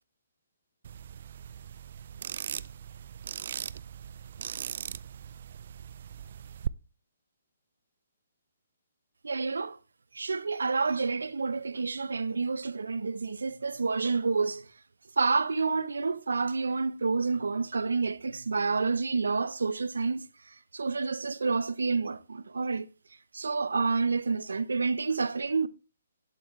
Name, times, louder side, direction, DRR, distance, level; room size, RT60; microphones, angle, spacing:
sound 1, 0.8-6.7, right 8 dB, 55° right, 0.3 m, -39 dB
voice 1, 9.2-9.8 10.1-14.6 15.2-20.3 20.7-22.9 23.3-25.7, right 4 dB, 85° right, 0.7 m, -29 dB
11.5 x 7.6 x 3.1 m
hypercardioid pair, 145°, 0 cm